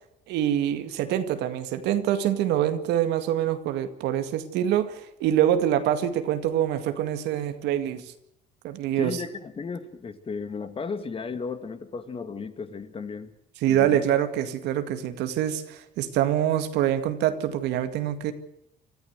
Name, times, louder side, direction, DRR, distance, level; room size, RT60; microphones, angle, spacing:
voice 1, 0.3-8.0 8.6-9.2 13.6-18.3, right 11 dB, 85° right, 9 dB, 2.1 m, -25 dB
voice 2, 9.0-13.3 13.7-14.0, left 5 dB, 35° left, 10 dB, 2.1 m, -34 dB
25.0 x 14.0 x 8.1 m, 0.79 s
cardioid pair, 110°, 17 cm